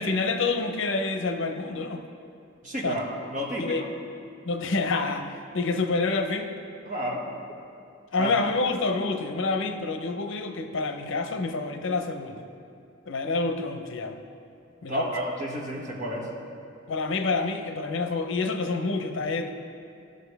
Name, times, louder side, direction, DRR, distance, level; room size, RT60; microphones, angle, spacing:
voice 1, 0.0-2.0 2.8-3.0 3.6-3.8 4.4-6.6 8.1-12.4 13.1-14.2 14.8-15.1 16.9-19.5, left 3 dB, 70° left, 6 dB, 0.7 m, -28 dB
voice 2, 2.6-3.0 3.3-3.9 6.8-7.2 8.2-8.3 14.9-16.3, right 1 dB, 40° right, -3 dB, 1.8 m, -31 dB
18.0 x 6.5 x 3.5 m, 2.5 s
head